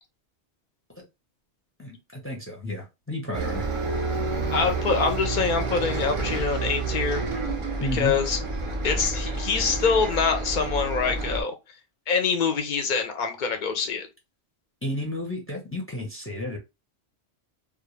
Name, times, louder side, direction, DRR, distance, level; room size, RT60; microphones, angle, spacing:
voice 1, 1.8-3.6 7.8-8.2 14.8-16.6, left 1 dB, 15° left, 0.6 m, -32 dB
Bus, 3.3-11.4, right 3 dB, 55° right, 0.3 m, -29 dB
voice 2, 4.5-7.2 7.9-8.4 8.8-11.5 12.1-14.1, left 5 dB, 55° left, 0.5 m, -25 dB
2.3 x 2.0 x 3.0 m
omnidirectional pair, 1.2 m